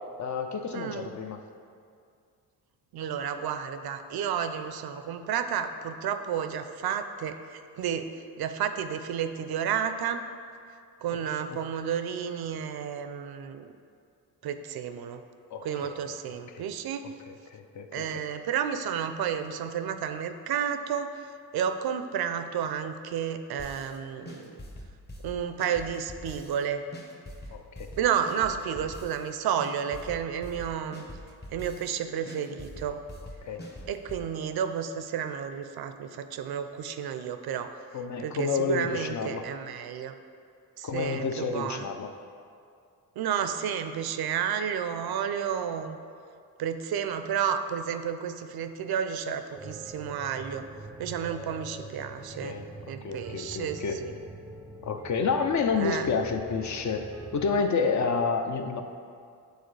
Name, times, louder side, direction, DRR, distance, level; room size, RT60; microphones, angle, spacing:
voice 1, 0.2-1.4 11.5-11.6 15.5-15.9 16.5-16.7 17.0-18.2 27.5-27.9 33.4-33.6 37.9-39.5 40.8-42.1 52.4-52.7 53.0-54.0 54.8-58.8, left 5 dB, 45° left, 6 dB, 0.5 m, -30 dB
voice 2, 0.7-1.1 2.9-10.2 11.0-13.7 14.4-15.2 15.6-17.1 17.9-21.1 21.5-24.6 25.2-26.8 28.0-31.1 31.5-33.0 33.9-37.7 38.2-40.1 40.8-41.9 43.2-46.0 46.6-50.6 51.0-52.6 52.9-54.1 55.8-56.1, right 8 dB, 65° right, 9 dB, 0.5 m, -31 dB
sound 1, 23.6-24.0 24.3-26.6 26.9-29.3 29.6-32.0 32.3-34.2, left 1 dB, 25° left, 0.9 m, -43 dB
sound 2, 49.5-57.6, right 2 dB, 5° right, 0.4 m, -44 dB
8.1 x 4.0 x 3.2 m, 2.3 s
cardioid pair, 85°, 40 cm